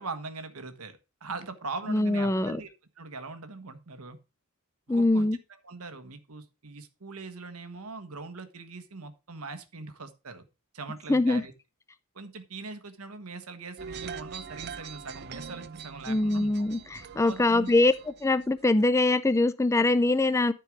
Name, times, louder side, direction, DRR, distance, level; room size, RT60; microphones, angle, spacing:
voice 1, 0.0-2.7 3.0-4.2 4.9-5.3 5.6-10.4 10.7-11.5 12.1-16.7 17.2-17.7, right 3 dB, 75° right, 1.3 m, -41 dB
voice 2, 1.9-2.6 4.9-5.4 11.1-11.4 16.1-17.9 18.2-20.5, left 2 dB, 15° left, 0.4 m, -23 dB
sound 1, 13.8-18.9, right 6 dB, 50° right, 0.6 m, -43 dB
13.0 x 4.6 x 4.8 m
head